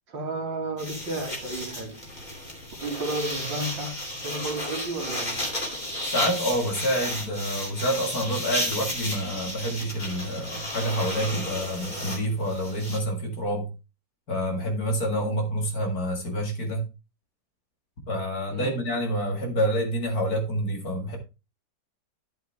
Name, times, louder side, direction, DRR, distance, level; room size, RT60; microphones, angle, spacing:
voice 1, 0.1-2.0 2.8-4.0 4.2-5.4 18.5-18.8, right 2 dB, 75° right, 2.9 m, -32 dB
sound 1, 0.8-13.0, left 1 dB, 20° left, 2.8 m, -33 dB
voice 2, 6.0-13.7 14.3-16.9 18.1-21.2, equal, 50° left, 2.5 m, -28 dB
11.0 x 7.3 x 3.4 m
omnidirectional pair, 2.1 m